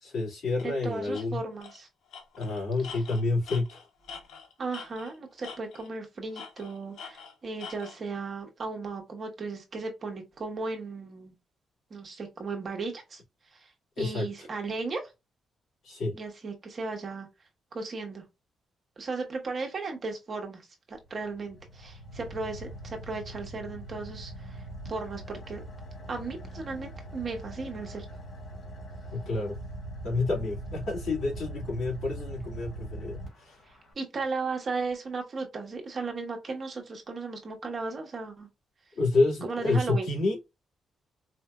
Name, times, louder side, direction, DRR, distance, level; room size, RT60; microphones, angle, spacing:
voice 1, 0.0-1.4 2.4-3.8 14.0-14.2 15.8-16.1 29.1-29.5 30.0-33.6 39.0-40.4, left 3 dB, 65° left, 2.3 m, -29 dB
Tools, 0.6-0.7 1.1-1.2 1.6-1.8 2.1-5.1 5.4-6.0 6.3-8.0, left 6 dB, 85° left, 1.2 m, -44 dB
voice 2, 0.6-1.9 4.6-11.3 11.9-13.2 13.5-13.7 14.0-15.1 16.1-17.3 17.7-18.2 19.0-20.6 20.9-24.6 24.9-25.6 26.1-28.1 34.0-38.5 39.4-40.1, right 3 dB, 35° right, 1.0 m, -36 dB
Car / Idling, 21.0-33.9, right 1 dB, 40° left, 2.0 m, -42 dB
4.3 x 2.6 x 2.2 m
cardioid pair, 160°, 0 cm